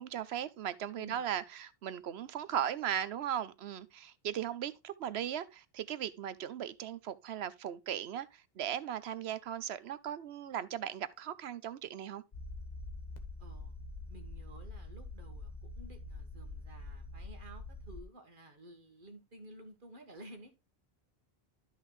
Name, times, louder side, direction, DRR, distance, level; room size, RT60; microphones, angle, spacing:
voice 1, 0.0-12.2, right 10 dB, 85° right, 1.0 m, -38 dB
voice 2, 1.0-1.3 13.4-13.8 14.1-20.5, right 1 dB, 55° right, 1.7 m, -53 dB
sound 1, 12.3-18.0, left 2 dB, 45° left, 1.3 m, -45 dB
12.5 x 5.5 x 3.1 m
omnidirectional pair, 1.0 m